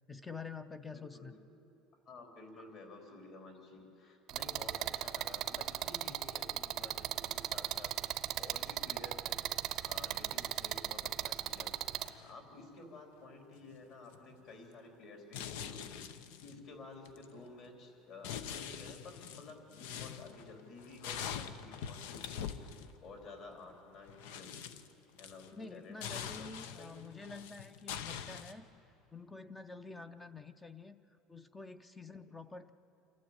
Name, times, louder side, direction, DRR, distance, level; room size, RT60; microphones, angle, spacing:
voice 1, 0.1-1.3 2.6-2.7 25.5-28.6 29.1-31.0 31.3-32.7, left 4 dB, 10° left, 12 dB, 0.5 m, -48 dB
voice 2, 0.9-1.7 2.1-9.4 9.9-11.7 12.2-24.7 25.2-26.5 26.8-27.1 29.9-30.1 31.9-32.2, left 3 dB, 45° left, 3 dB, 3.7 m, -52 dB
sound 1, 4.3-12.1, right 14 dB, 45° right, 0.6 m, -37 dB
sound 2, 11.0-11.1 11.4-11.5 11.9-12.7 13.6-13.8 14.1-14.5 15.3-16.7 17.0-17.8 18.2-22.9 23.6-23.7 23.9-25.7 26.0-28.5, left 8 dB, 90° left, 0.8 m, -44 dB
27.0 x 12.5 x 8.8 m, 2.8 s
cardioid pair, 160°, 0 cm